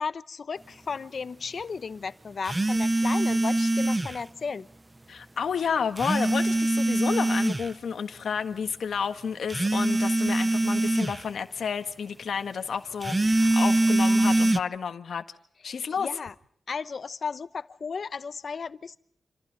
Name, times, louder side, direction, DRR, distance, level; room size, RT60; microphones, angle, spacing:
voice 1, 0.0-4.7 15.6-16.3 16.7-19.0, left 5 dB, 55° left, 1.0 m, -34 dB
sound 1, 2.5-4.2 6.0-7.7 9.5-11.2 13.0-14.6, right 2 dB, 20° right, 0.8 m, -23 dB
voice 2, 5.1-15.2 15.6-16.1, left 6 dB, 75° left, 1.6 m, -31 dB
27.5 x 27.0 x 4.1 m
wide cardioid pair, 125°, 0 cm